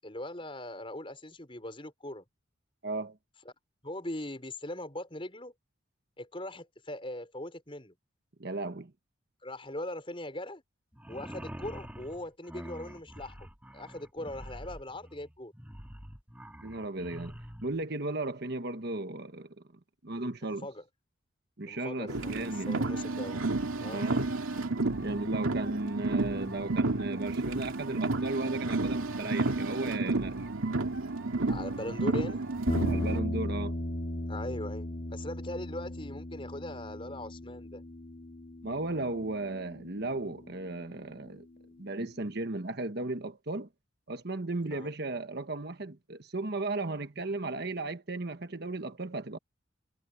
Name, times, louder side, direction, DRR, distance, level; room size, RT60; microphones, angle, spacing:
voice 1, 0.0-2.2 3.8-5.5 6.2-7.9 9.4-10.6 11.1-13.5 13.7-15.5 20.4-20.8 21.6-23.4 23.8-24.1 31.5-32.4 34.3-37.8 44.6-44.9, left 1 dB, 25° left, 5.4 m, -40 dB
voice 2, 2.8-3.2 8.4-8.9 16.6-19.5 20.0-20.7 21.6-22.7 23.9-24.2 25.0-30.5 32.8-33.8 38.6-41.5 41.8-43.7 44.1-49.4, right 2 dB, 50° right, 1.3 m, -35 dB
sound 1, 10.9-17.8, equal, 10° right, 1.8 m, -46 dB
Car, 22.1-33.2, right 3 dB, 90° right, 2.4 m, -31 dB
sound 2, 32.7-41.0, left 1 dB, 45° left, 2.2 m, -37 dB
head